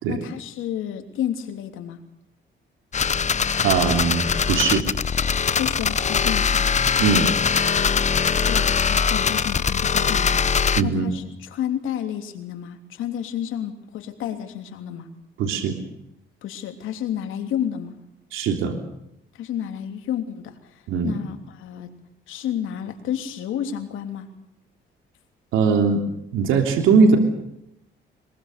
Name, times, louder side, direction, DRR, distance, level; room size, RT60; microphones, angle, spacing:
voice 1, 0.1-2.0 5.6-6.8 8.4-15.1 16.4-17.9 19.3-21.9 22.3-24.3, left 10 dB, 85° left, 6 dB, 3.2 m, -31 dB
sound 1, 2.9-10.8, left 6 dB, 35° left, 0.9 m, -21 dB
voice 2, 3.6-4.8 7.0-7.3 10.8-11.1 15.4-15.8 18.3-18.8 20.9-21.1 25.5-26.0 26.3-27.2, right 5 dB, 90° right, 4 dB, 3.4 m, -20 dB
23.0 x 22.0 x 6.8 m, 0.80 s
cardioid pair, 90°, 20 cm